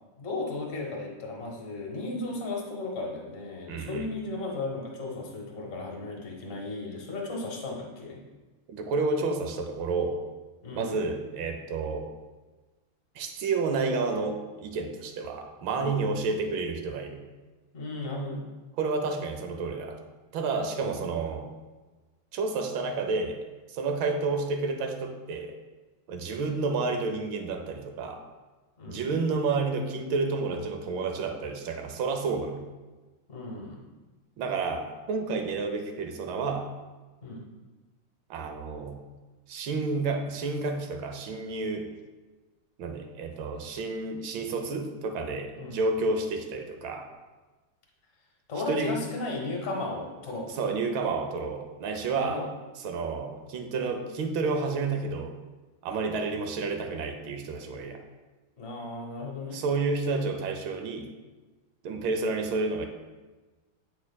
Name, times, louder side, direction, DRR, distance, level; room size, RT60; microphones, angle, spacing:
voice 1, 0.2-8.2 10.6-11.0 15.7-16.1 17.7-18.4 20.8-21.1 28.8-29.1 33.3-33.8 37.2-37.5 45.6-45.8 48.5-50.6 52.2-52.5 58.6-59.6, left 2 dB, 40° left, -1 dB, 1.0 m, -35 dB
voice 2, 3.7-4.1 8.7-10.2 10.7-12.1 13.1-17.2 18.8-20.0 20.3-21.5 22.3-23.4 23.7-25.6 26.1-28.2 28.9-32.6 34.4-36.7 38.3-39.0 39.5-41.9 42.8-47.1 48.7-49.0 50.5-52.4 52.8-55.3 55.8-58.0 59.5-61.1 61.8-62.9, right 3 dB, 75° right, 5 dB, 1.4 m, -30 dB
9.4 x 4.5 x 2.2 m, 1.2 s
omnidirectional pair, 2.3 m